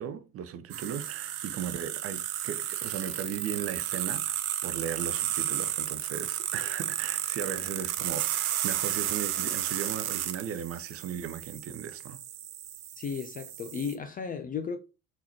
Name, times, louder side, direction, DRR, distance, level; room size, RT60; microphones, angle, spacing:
voice 1, 0.0-12.2, right 8 dB, 35° right, 0.5 m, -37 dB
sound 1, 0.7-13.9, right 12 dB, 75° right, 0.6 m, -33 dB
voice 2, 13.0-14.8, left 6 dB, 20° left, 0.3 m, -34 dB
4.4 x 3.8 x 2.9 m
figure-of-eight pair, 55°, 44 cm